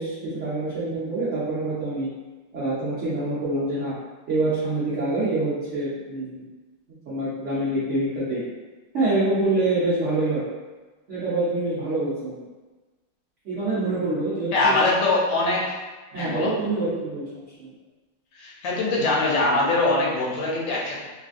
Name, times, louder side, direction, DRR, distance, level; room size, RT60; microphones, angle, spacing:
voice 1, 0.0-2.1 2.5-3.9 4.3-6.4 7.1-8.4 8.9-10.4 11.1-12.4 13.4-14.8 16.1-17.7, right 2 dB, 75° right, -10 dB, 0.6 m, -26 dB
voice 2, 14.5-15.8 16.2-16.5 18.3-21.0, left 2 dB, 75° left, -4 dB, 1.3 m, -22 dB
3.2 x 2.5 x 2.4 m, 1.3 s
omnidirectional pair, 2.2 m